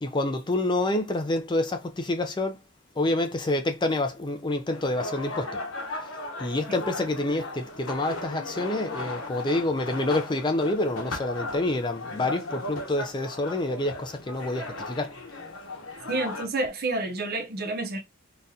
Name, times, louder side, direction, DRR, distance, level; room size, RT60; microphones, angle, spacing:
voice 1, 0.0-2.6 3.0-5.6 6.4-15.1, left 2 dB, 20° left, 0.4 m, -27 dB
sound 1, 4.7-16.5, left 2 dB, 85° left, 1.0 m, -37 dB
voice 2, 16.1-18.0, right 2 dB, 45° right, 0.6 m, -29 dB
3.9 x 2.3 x 2.7 m
head